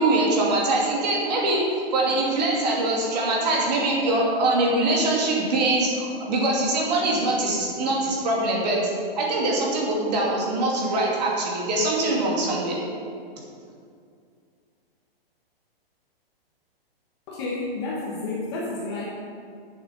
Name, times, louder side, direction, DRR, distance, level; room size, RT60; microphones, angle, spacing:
voice 1, 0.0-1.7 1.9-8.9 9.2-12.8, right 2 dB, 45° right, -3 dB, 2.5 m, -23 dB
voice 2, 17.3-19.0, left 2 dB, 25° left, -4 dB, 1.2 m, -30 dB
8.5 x 7.3 x 5.9 m, 2.3 s
hypercardioid pair, 170°, 30 cm